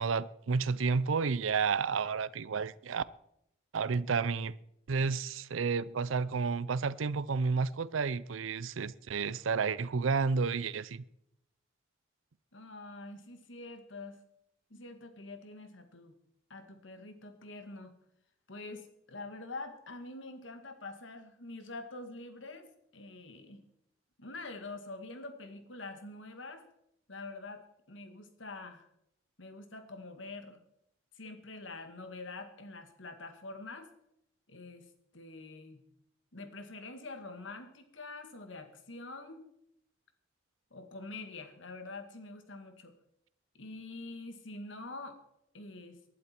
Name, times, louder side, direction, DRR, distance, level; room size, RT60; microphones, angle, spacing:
voice 1, 0.0-3.0 3.7-4.6 4.9-11.0, right 5 dB, 85° right, 0.5 m, -31 dB
voice 2, 12.5-14.2 14.7-16.1 16.5-17.9 18.5-23.6 24.2-26.6 27.1-28.9 29.4-30.6 31.2-33.9 34.5-35.8 36.3-39.5 40.7-42.9 43.5-45.2 45.5-46.0, left 2 dB, 75° left, 1.9 m, -46 dB
19.5 x 11.5 x 4.5 m
head